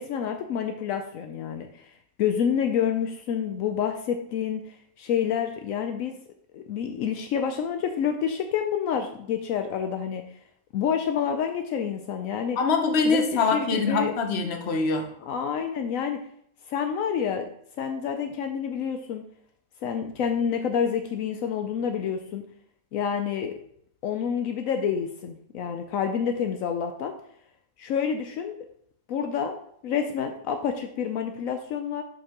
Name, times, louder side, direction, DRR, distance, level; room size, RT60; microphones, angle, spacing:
voice 1, 0.0-1.8 2.2-4.6 5.0-6.2 6.5-10.2 10.7-12.6 13.0-14.1 15.2-16.2 16.7-17.5 17.8-19.2 19.8-22.4 22.9-23.5 24.0-27.1 27.8-28.6 29.1-32.0, left 7 dB, 80° left, 6 dB, 1.0 m, -28 dB
voice 2, 12.6-15.1, left 4 dB, 55° left, 5 dB, 1.1 m, -24 dB
7.6 x 5.4 x 2.9 m, 0.67 s
omnidirectional pair, 1.4 m